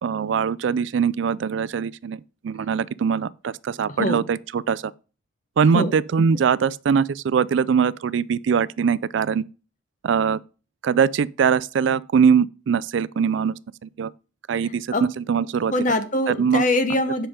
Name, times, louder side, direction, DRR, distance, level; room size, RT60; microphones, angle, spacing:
voice 1, 0.0-4.9 5.6-9.4 10.0-10.4 10.8-13.5 13.8-14.1 14.5-15.7 16.3-16.6, right 6 dB, 80° right, 0.4 m, -22 dB
voice 2, 15.7-17.3, left 1 dB, 40° left, 1.1 m, -23 dB
7.6 x 5.7 x 4.9 m
head